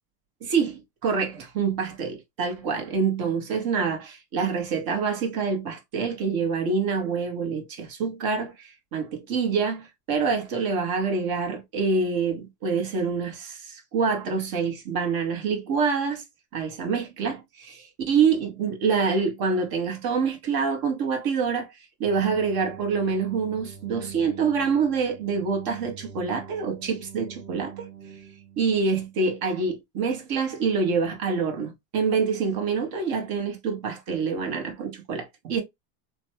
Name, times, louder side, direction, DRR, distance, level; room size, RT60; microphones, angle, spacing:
voice 1, 0.4-16.2 16.5-21.7 22.0-27.9 28.6-35.6, right 5 dB, 45° right, 1.2 m, -26 dB
sound 1, 22.0-29.1, right 8 dB, 25° right, 0.9 m, -44 dB
3.1 x 2.2 x 2.9 m
supercardioid pair, 110°, 49 cm